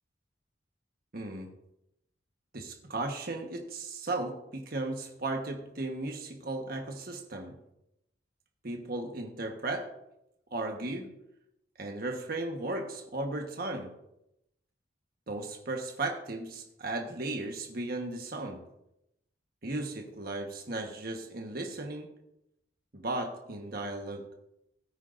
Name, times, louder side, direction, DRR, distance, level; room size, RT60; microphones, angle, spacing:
voice 1, 1.1-1.5 2.5-7.5 8.6-9.9 10.5-11.2 11.8-13.9 15.3-18.6 19.6-22.1 22.9-24.3, right 2 dB, 50° right, 2 dB, 1.3 m, -36 dB
17.5 x 9.2 x 2.6 m, 0.83 s
head